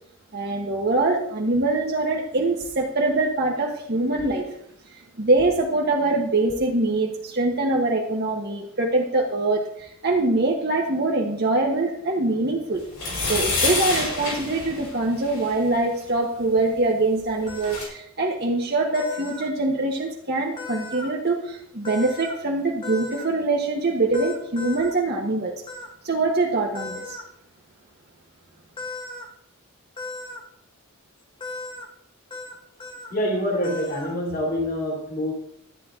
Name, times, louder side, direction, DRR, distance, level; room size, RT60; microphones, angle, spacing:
voice 1, 0.3-4.5 4.9-12.8 13.2-25.5 26.0-27.2, right 2 dB, 50° right, -1 dB, 1.3 m, -23 dB
sound 1, 12.9-15.5 17.2-17.3 17.5-17.9, left 2 dB, 65° left, 4.8 m, -27 dB
sound 2, 17.5-17.8 18.9-19.5 20.6-21.1 21.8-22.4 22.8-23.3 24.1-24.9 25.7-25.9 26.7-27.2 28.8-29.3 30.0-30.4 31.4-31.9 32.3-32.5 32.8-33.1 33.6-34.1, left 2 dB, 20° left, 1.3 m, -36 dB
voice 2, 33.1-35.3, equal, 45° left, 0 dB, 2.7 m, -26 dB
13.0 x 9.6 x 3.8 m, 0.72 s
head